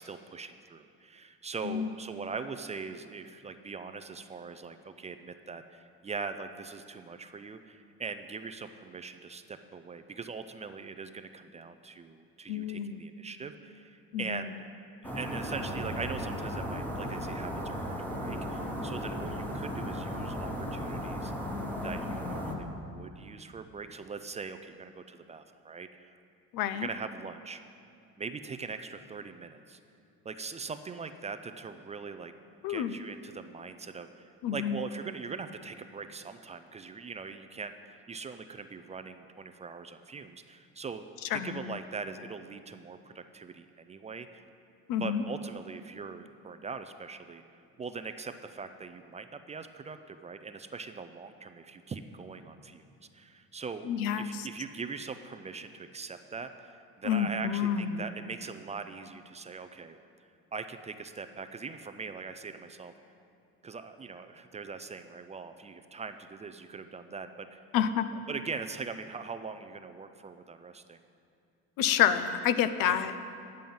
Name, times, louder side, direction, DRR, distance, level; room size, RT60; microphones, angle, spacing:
voice 1, 0.0-14.6 15.0-21.3 21.8-26.1 26.7-27.6 28.2-29.8 30.2-32.3 32.7-41.0 41.3-44.4 45.0-47.4 47.8-52.9 53.1-53.9 54.2-60.0 60.5-62.9 63.6-67.6 68.3-71.0 72.8-73.1, right 4 dB, 20° right, 8 dB, 0.3 m, -41 dB
voice 2, 12.5-13.0 14.1-14.5 26.5-26.9 32.6-32.9 34.4-34.8 41.3-41.8 44.9-45.2 53.9-54.5 57.0-58.0 67.7-68.1 71.8-73.2, left 9 dB, 80° left, 12 dB, 0.6 m, -29 dB
sound 1, 15.0-22.5, equal, 5° left, 1.2 m, -35 dB
10.0 x 7.6 x 5.4 m, 2.5 s
cardioid pair, 115°, 33 cm